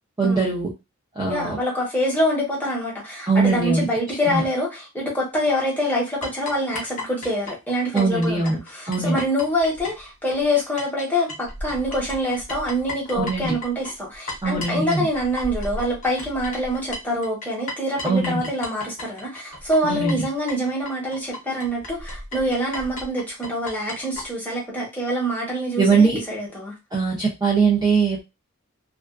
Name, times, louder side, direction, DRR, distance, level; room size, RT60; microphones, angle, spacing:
voice 1, 0.2-0.7 1.2-1.6 3.3-3.9 4.3-4.4 7.9-8.6 8.9-9.2 13.1-13.6 14.4-15.1 18.0-18.4 19.8-20.2 25.8-26.2 26.9-28.2, right 4 dB, 20° right, 0.4 m, -21 dB
voice 2, 1.3-8.4 8.7-26.7, equal, 10° left, 0.9 m, -25 dB
sound 1, 6.2-11.0 11.3-24.3, left 2 dB, 40° left, 0.7 m, -35 dB
2.3 x 2.3 x 2.3 m
head